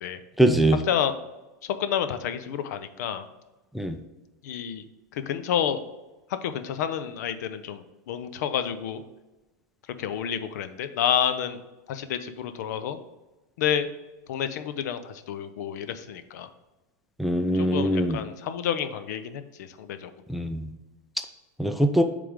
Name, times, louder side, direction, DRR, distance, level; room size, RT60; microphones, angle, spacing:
voice 1, 0.4-0.8 3.7-4.0 17.2-18.2 20.3-20.7 21.6-22.0, right 1 dB, ahead, 6 dB, 0.4 m, -22 dB
voice 2, 1.8-3.3 4.4-4.8 5.3-5.8 6.4-9.0 10.0-11.6 11.9-13.0 13.6-13.9 14.3-16.5 17.5-20.1, left 9 dB, 70° left, 10 dB, 0.6 m, -29 dB
8.5 x 3.3 x 3.6 m, 1.1 s
supercardioid pair, 130°, 9 cm